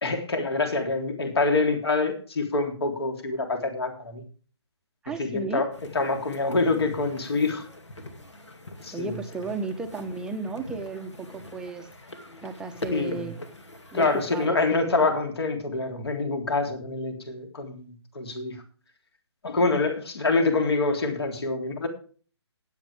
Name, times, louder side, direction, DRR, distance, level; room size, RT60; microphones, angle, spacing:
voice 1, 0.0-4.2 5.2-7.6 8.8-9.2 12.9-13.3 13.9-18.6 19.4-21.9, left 3 dB, 60° left, 4 dB, 3.4 m, -26 dB
voice 2, 5.0-5.6 8.9-11.9 12.4-13.4 13.9-15.1, right 4 dB, 5° right, 6 dB, 0.8 m, -34 dB
sound 1, 5.7-14.5, left 1 dB, 75° left, 2.4 m, -43 dB
19.0 x 8.1 x 3.5 m, 0.41 s
figure-of-eight pair, 140°, 15 cm